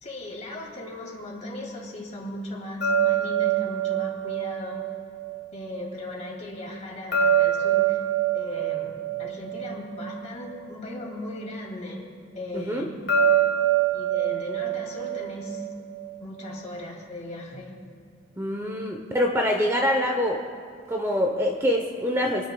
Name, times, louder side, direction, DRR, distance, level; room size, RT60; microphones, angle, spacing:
voice 1, 0.0-4.8 5.5-8.0 8.3-12.0 12.3-12.9 13.9-15.7 16.2-17.7 18.7-18.8, left 1 dB, 35° left, -2 dB, 2.3 m, -37 dB
sound 1, 2.8-5.9 7.1-10.6 13.1-16.2, right 8 dB, 70° left, 1.4 m, -25 dB
voice 2, 12.5-12.9 18.4-20.4 20.9-22.5, left 1 dB, 15° right, 1 dB, 0.7 m, -25 dB
28.0 x 10.5 x 2.3 m, 2.2 s
head